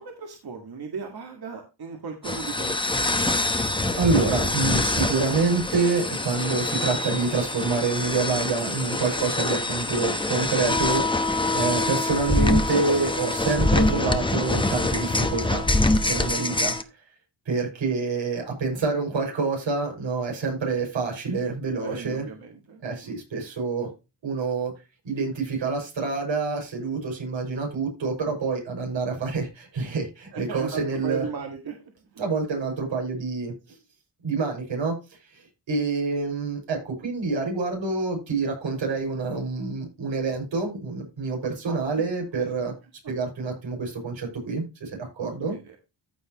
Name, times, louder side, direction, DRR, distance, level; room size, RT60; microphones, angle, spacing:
voice 1, 0.0-2.9 16.3-16.5 21.8-23.2 30.3-32.2 41.7-42.1 42.4-42.5 43.0-43.1 45.2-45.8, right 5 dB, 55° right, 3 dB, 1.9 m, -37 dB
sound 1, 2.2-16.8, left 2 dB, 10° left, 1.0 m, -25 dB
voice 2, 4.0-15.7 16.0-16.7 17.5-22.2 22.8-23.9 24.2-24.7 25.0-31.2 32.2-33.8 34.2-34.9 35.3-42.7 43.1-45.5, right 4 dB, 80° right, 0 dB, 6.3 m, -27 dB
14.5 x 6.3 x 3.0 m, 0.28 s
wide cardioid pair, 120°, 45 cm